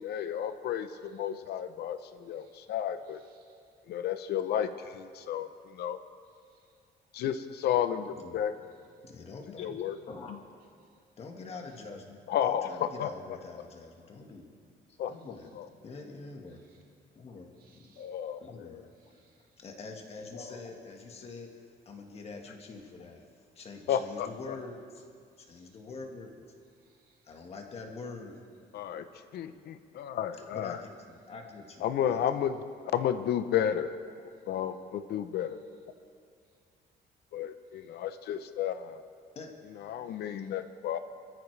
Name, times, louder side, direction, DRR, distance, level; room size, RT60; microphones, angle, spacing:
voice 1, 0.0-3.2 3.9-6.0 7.1-8.5 9.6-10.0 12.3-13.1 15.0-15.1 15.5-15.7 18.0-18.8 23.9-24.5 28.7-29.0 29.3-30.8 31.8-32.6 32.9-33.9 34.5-35.6 37.3-39.0 39.7-41.0, left 9 dB, 75° left, 10 dB, 0.7 m, -32 dB
voice 2, 3.3-3.6 6.5-6.6 17.6-18.1 19.0-19.4 25.6-25.8 26.8-27.3 40.1-40.5, right 6 dB, 60° right, 1 dB, 2.0 m, -68 dB
voice 3, 9.0-9.8 10.1-10.4 11.2-14.5 14.9-15.5 15.8-16.8 17.1-17.9 18.4-18.9 19.6-23.3 23.5-25.0 25.4-26.3 27.2-28.4 30.5-32.2 39.3-39.6, left 3 dB, 35° left, 2 dB, 1.5 m, -45 dB
25.0 x 14.0 x 3.3 m, 2.2 s
cardioid pair, 175°, 17 cm